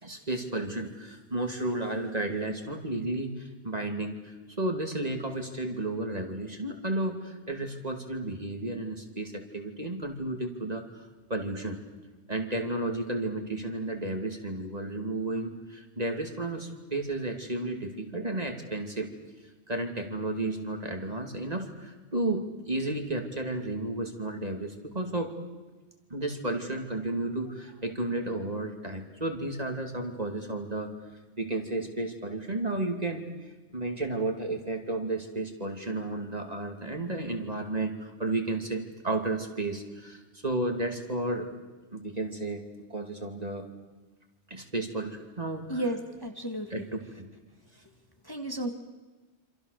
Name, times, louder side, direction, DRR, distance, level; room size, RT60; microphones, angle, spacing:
voice 1, 0.0-11.0 11.3-11.8 12.3-19.1 19.7-25.3 26.1-30.9 31.4-33.2 33.7-41.5 41.9-42.6 42.9-43.7 44.5-45.8 46.7-47.3, right 2 dB, 35° right, 4 dB, 2.8 m, -32 dB
voice 2, 45.7-46.8 48.2-48.7, right 1 dB, 20° left, 3 dB, 2.0 m, -33 dB
28.0 x 26.5 x 6.8 m, 1.2 s
omnidirectional pair, 1.2 m